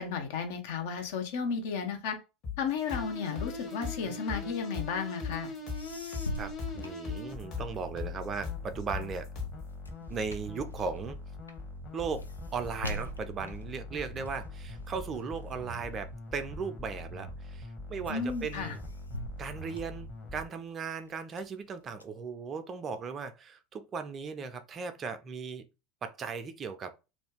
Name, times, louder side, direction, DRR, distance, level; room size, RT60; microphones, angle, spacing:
voice 1, 0.0-2.2 2.6-5.5 18.1-18.7, left 6 dB, 60° left, 0.7 m, -33 dB
sound 1, 2.4-9.7, left 7 dB, 45° left, 1.3 m, -39 dB
sound 2, 2.9-20.5, left 1 dB, 30° left, 1.0 m, -43 dB
sound 3, 5.7-7.8 8.2-16.9 17.4-17.8 18.1-20.6 21.0-22.0, left 1 dB, 85° left, 0.4 m, -44 dB
voice 2, 6.4-9.3 10.1-11.2 11.9-12.3 12.5-18.8 19.4-25.7 26.0-26.9, right 5 dB, 30° right, 0.5 m, -37 dB
2.5 x 2.2 x 3.6 m
figure-of-eight pair, 80°, 0 cm